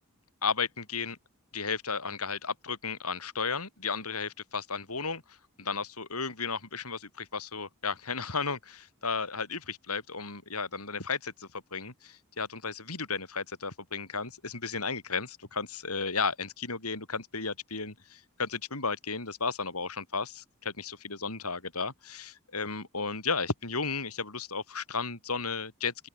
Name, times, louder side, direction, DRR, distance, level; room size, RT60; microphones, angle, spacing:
voice 1, 0.4-1.2 1.5-5.2 5.6-26.1, left 4 dB, 75° left, 6.3 m, -34 dB
open air
head